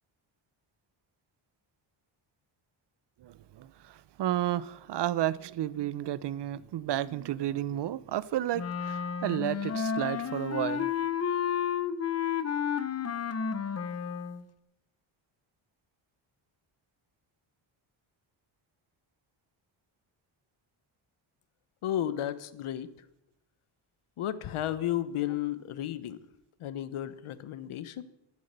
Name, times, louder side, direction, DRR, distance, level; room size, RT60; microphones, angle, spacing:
voice 1, 3.2-10.9, right 12 dB, 55° right, 0.6 m, -32 dB
Wind instrument woodwind instrument, 8.5-14.4, left 7 dB, 30° left, 0.8 m, -31 dB
voice 2, 21.8-22.9 24.2-26.2 26.6-28.0, left 11 dB, 80° left, 1.1 m, -33 dB
12.5 x 12.0 x 6.7 m
wide cardioid pair, 160°, 50 cm